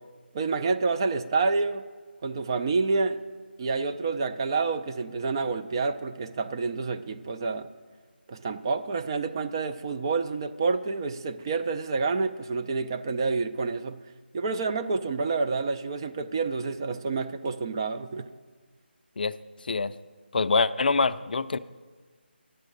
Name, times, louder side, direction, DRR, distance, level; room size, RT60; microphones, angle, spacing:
voice 1, 0.3-1.8 2.2-3.2 3.6-7.7 8.3-14.0 14.3-18.3, right 4 dB, 25° right, 9 dB, 0.3 m, -28 dB
voice 2, 20.3-21.6, left 4 dB, 55° left, 13 dB, 0.4 m, -25 dB
10.5 x 7.4 x 6.5 m, 1.5 s
figure-of-eight pair, 160°, 6 cm